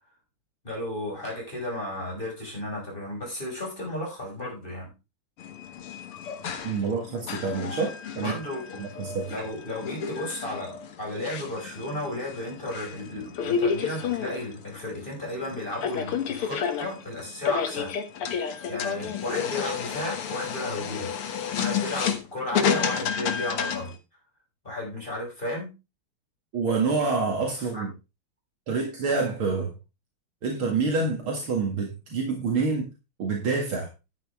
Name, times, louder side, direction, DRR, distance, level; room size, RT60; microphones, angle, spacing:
voice 1, 0.6-4.9 8.2-8.9 9.3-17.9 18.7-21.1 21.6-23.9 24.6-25.7 27.6-27.8, left 1 dB, 20° left, -2 dB, 6.0 m, -34 dB
sound 1, 5.4-24.0, left 7 dB, 80° left, 2.2 m, -31 dB
voice 2, 6.6-8.3 8.8-9.3 26.5-27.9 28.7-29.7 30.4-32.9 33.2-33.9, right 4 dB, 70° right, 0 dB, 2.8 m, -27 dB
11.5 x 9.1 x 3.6 m, 0.28 s
omnidirectional pair, 2.4 m